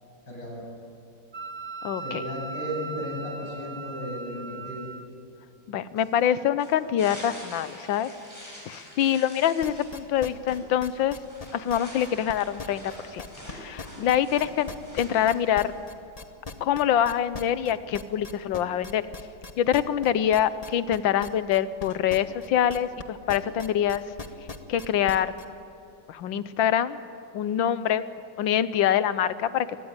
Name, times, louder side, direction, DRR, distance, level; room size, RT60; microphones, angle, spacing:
voice 1, 0.3-0.6 2.0-4.9, equal, 60° left, -3 dB, 8.1 m, -35 dB
Wind instrument woodwind instrument, 1.3-5.1, right 3 dB, 40° right, 1.0 m, -38 dB
voice 2, 1.8-2.2 5.7-8.1 8.4-11.2 11.5-13.2 13.5-15.7 16.6-19.0 19.6-24.0 24.7-25.3 26.1-27.0 27.3-28.0 28.4-29.7, left 10 dB, 75° left, 14 dB, 1.5 m, -25 dB
sound 1, 6.0-15.8, equal, 10° right, 8.0 m, -46 dB
sound 2, 9.6-13.5 13.8-23.0 23.3-25.4, left 3 dB, 25° left, 0.8 m, -39 dB
24.0 x 19.0 x 8.9 m, 2.6 s
omnidirectional pair, 2.1 m